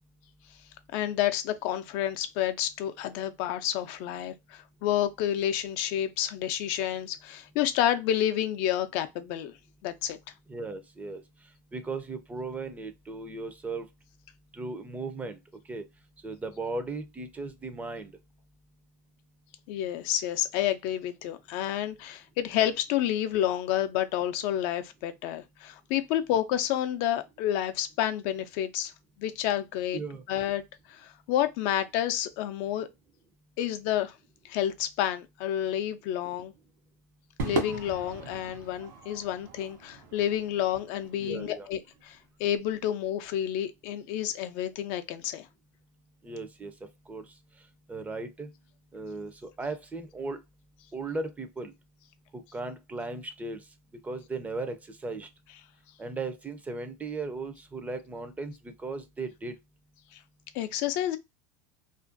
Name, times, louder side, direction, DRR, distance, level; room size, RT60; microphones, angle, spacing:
voice 1, 0.9-9.5 9.8-10.2 19.7-28.9 29.2-30.0 30.3-30.6 30.9-32.9 33.6-34.1 34.5-36.5 37.4-45.5 60.1-60.2 60.5-61.2, left 11 dB, 65° left, 0.4 m, -29 dB
voice 2, 10.5-11.2 11.7-13.9 14.5-15.4 15.7-15.8 16.2-18.1 29.9-30.2 41.2-41.7 46.2-46.7 47.1-47.3 47.9-48.5 48.9-50.4 50.9-51.7 52.3-53.6 54.0-55.3 56.0-59.5, right 3 dB, 15° right, 0.5 m, -36 dB
Crowd / Fireworks, 37.4-41.9, right 4 dB, 85° right, 0.8 m, -38 dB
2.4 x 2.2 x 2.5 m
supercardioid pair, 105°, 9 cm